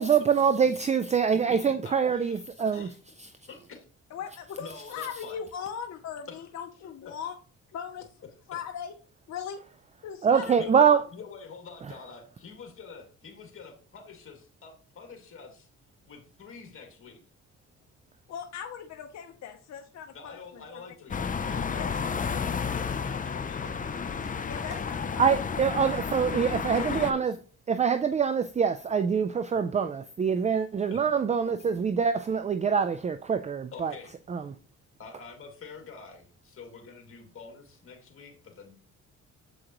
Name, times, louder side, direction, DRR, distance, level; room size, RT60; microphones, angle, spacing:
voice 1, 0.0-2.9 3.2-3.3 10.2-11.0 25.2-27.3 27.7-33.9 34.3-34.5, right 6 dB, 25° right, 0.4 m, -25 dB
voice 2, 1.3-3.0 3.5-3.8 4.5-5.4 6.3-6.5 7.0-7.1 10.6-10.8 11.1-15.7 16.1-17.2 20.1-24.3 26.3-27.2 30.9-31.2 33.7-34.2 35.0-38.7, left 5 dB, 45° left, 2.2 m, -47 dB
voice 3, 4.1-7.3 7.7-8.1 8.5-8.9 9.3-9.6 10.0-11.0 18.3-20.6 21.7-21.9 23.1-23.2 24.4-25.3 26.4-26.5, left 7 dB, 60° left, 0.8 m, -39 dB
sound 1, 21.1-27.1, left 6 dB, 25° left, 0.6 m, -31 dB
7.8 x 5.0 x 3.0 m
cardioid pair, 90°, 30 cm